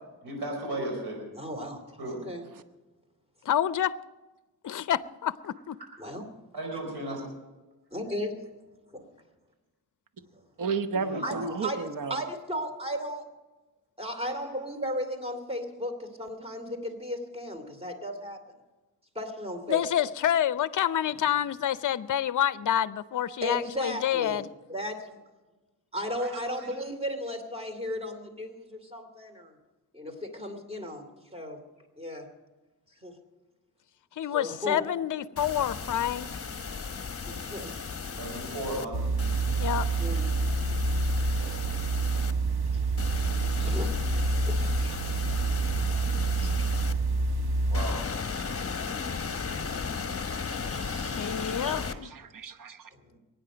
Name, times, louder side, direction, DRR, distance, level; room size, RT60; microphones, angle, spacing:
voice 1, 0.2-1.2 2.0-2.2 6.5-7.2 10.9-11.6 26.2-26.3 26.6-26.7 38.2-39.0 47.7-48.0, right 1 dB, 90° right, 4.8 m, -35 dB
voice 2, 1.3-2.4 6.0-6.2 7.9-8.3 8.9-9.0 10.3-10.4 11.2-13.2 14.0-18.4 19.1-20.1 23.4-24.4 24.7-25.0 25.9-29.6 29.9-31.1 31.3-31.6 32.0-32.3 33.0-33.2 34.3-34.8 37.3-37.7 38.4-38.6 40.0-40.3 41.3-41.6 43.5-45.0 45.5-46.0 46.4-46.7 47.1-47.4 47.8-48.0 50.7-51.9 52.9-53.2, equal, 15° right, 2.8 m, -36 dB
voice 3, 3.5-4.0 4.6-5.8 19.7-24.5 34.2-36.3 39.6-39.9 51.1-52.1, left 10 dB, 50° left, 0.6 m, -28 dB
voice 4, 10.6-12.2 48.4-48.6 49.6-49.7 52.0-52.9, right 4 dB, 55° right, 1.0 m, -33 dB
sound 1, 35.4-38.8 39.2-42.3 43.0-46.9 47.7-52.0, left 5 dB, 35° left, 1.1 m, -35 dB
sound 2, 38.9-47.8, right 3 dB, 70° right, 1.4 m, -27 dB
22.5 x 9.5 x 5.1 m
cardioid pair, 70°, 39 cm